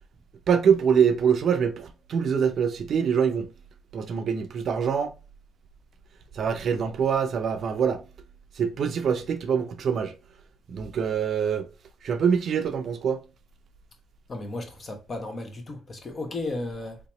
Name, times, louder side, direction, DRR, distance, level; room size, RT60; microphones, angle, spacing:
voice 1, 0.5-3.5 3.9-5.1 6.3-8.0 8.6-10.1 10.7-11.6 12.0-13.2, right 7 dB, 60° right, 0.5 m, -24 dB
voice 2, 14.3-17.0, left 2 dB, 40° left, 0.9 m, -34 dB
3.4 x 2.8 x 3.0 m
cardioid pair, 90°, 0 cm